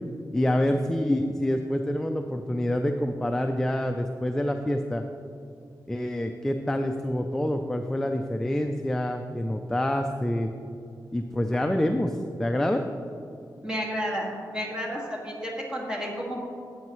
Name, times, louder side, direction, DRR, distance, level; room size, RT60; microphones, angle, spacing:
voice 1, 0.3-5.0 5.9-10.5 11.1-12.8, left 1 dB, 5° left, 5 dB, 0.4 m, -27 dB
voice 2, 13.6-16.4, equal, 10° right, -3 dB, 1.9 m, -31 dB
13.5 x 8.3 x 3.1 m, 2.5 s
wide cardioid pair, 145°, 7 cm